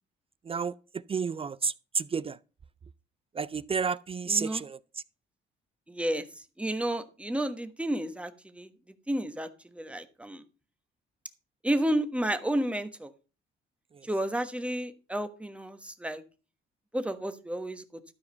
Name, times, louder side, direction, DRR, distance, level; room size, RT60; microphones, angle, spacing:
voice 1, 0.5-2.4 3.4-4.8, right 5 dB, 30° right, 0.4 m, -31 dB
voice 2, 4.3-4.6 5.9-6.2 6.6-8.7 9.1-10.4 11.6-13.1 14.1-16.2 16.9-17.8, right 1 dB, 5° right, 1.2 m, -31 dB
12.5 x 4.9 x 5.6 m
cardioid pair, 90°, 20 cm